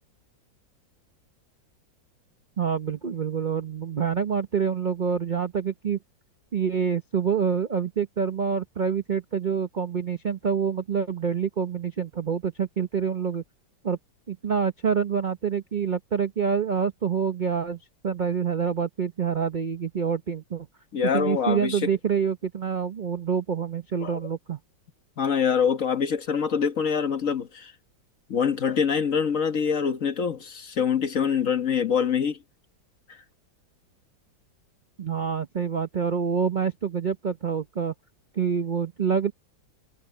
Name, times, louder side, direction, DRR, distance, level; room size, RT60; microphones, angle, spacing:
voice 1, 2.6-6.0 6.5-13.4 13.8-14.0 14.3-20.7 21.0-24.6 35.0-37.9 38.4-39.3, right 6 dB, 55° right, 0.5 m, -27 dB
voice 2, 20.9-21.9 24.0-24.2 25.2-27.7 28.3-32.4, left 7 dB, 45° left, 1.5 m, -25 dB
omnidirectional pair, 2.1 m